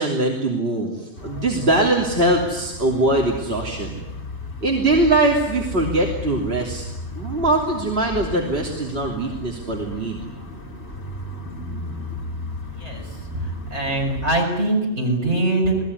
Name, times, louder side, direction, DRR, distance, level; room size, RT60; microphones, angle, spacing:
voice 1, 0.0-4.0 4.6-6.8 7.1-10.2, right 2 dB, 55° right, -1 dB, 3.4 m, -21 dB
sound 1, 1.2-14.4, left 1 dB, 65° left, 3.3 m, -34 dB
voice 2, 13.7-15.8, right 2 dB, 75° right, 1 dB, 6.9 m, -22 dB
29.0 x 20.0 x 9.8 m, 1.0 s
omnidirectional pair, 1.2 m